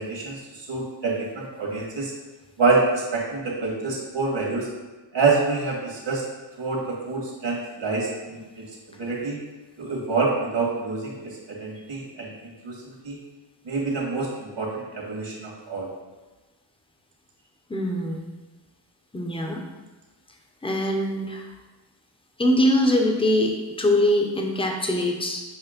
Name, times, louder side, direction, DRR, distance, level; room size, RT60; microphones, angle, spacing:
voice 1, 0.0-2.1 2.6-4.7 5.1-6.2 6.6-8.6 9.0-9.4 9.8-13.2 13.6-15.9, right 3 dB, 65° right, -2 dB, 2.1 m, -27 dB
voice 2, 17.7-18.2 19.1-19.6 20.6-21.5 22.4-25.4, left 1 dB, 10° left, 2 dB, 0.9 m, -23 dB
7.2 x 3.3 x 5.1 m, 1.2 s
wide cardioid pair, 105°, 47 cm